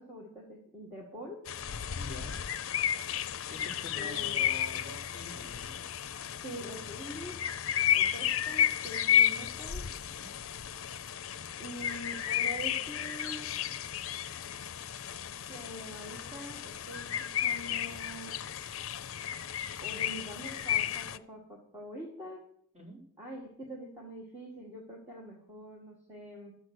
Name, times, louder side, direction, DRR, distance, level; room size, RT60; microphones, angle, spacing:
voice 1, 0.0-1.4 4.0-4.4 6.4-7.4 7.9-9.9 11.6-13.5 15.5-18.4 19.8-22.4 23.2-26.6, equal, 10° right, -3 dB, 1.8 m, -45 dB
sound 1, 1.4-21.2, left 10 dB, 70° left, 0.5 m, -33 dB
voice 2, 2.0-2.4 3.5-5.8 10.1-10.3 22.7-23.0, left 2 dB, 30° right, -3 dB, 4.0 m, -46 dB
12.5 x 7.8 x 6.3 m, 0.67 s
head